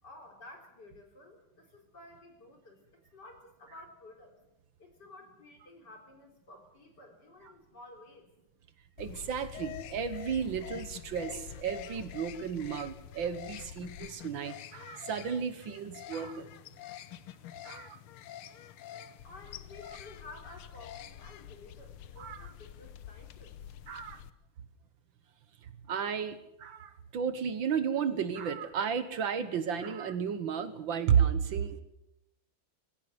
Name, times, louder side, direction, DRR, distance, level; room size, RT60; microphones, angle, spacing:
voice 1, 0.0-2.8 3.1-4.3 4.8-8.3 19.2-23.6, left 2 dB, 50° left, 3 dB, 4.4 m, -52 dB
sound 1, 9.0-24.3, left 10 dB, 85° left, 1.8 m, -46 dB
voice 2, 9.0-16.5 17.6-18.0 22.2-22.5 23.9-24.2 25.9-31.8, right 7 dB, 65° right, 11 dB, 1.9 m, -33 dB
20.0 x 16.5 x 8.0 m, 0.86 s
omnidirectional pair, 2.3 m